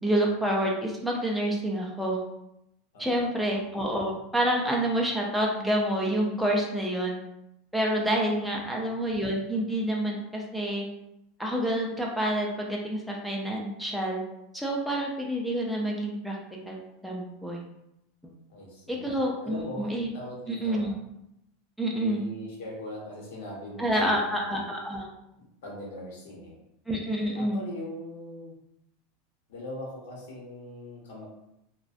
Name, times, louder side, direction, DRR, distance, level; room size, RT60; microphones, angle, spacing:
voice 1, 0.0-2.2 3.0-7.2 7.7-10.9 11.4-14.2 14.5-16.4 16.7-17.6 18.9-20.1 20.5-20.9 21.8-22.2 23.8-25.1 26.9-27.6, right 1 dB, ahead, -2 dB, 0.3 m, -28 dB
voice 2, 2.9-3.5 8.4-8.7 18.5-21.0 21.9-24.7 25.6-26.6 27.3-28.6 29.5-31.2, left 1 dB, 80° left, -3 dB, 0.9 m, -41 dB
2.5 x 2.1 x 2.3 m, 0.84 s
supercardioid pair, 160°, 0 cm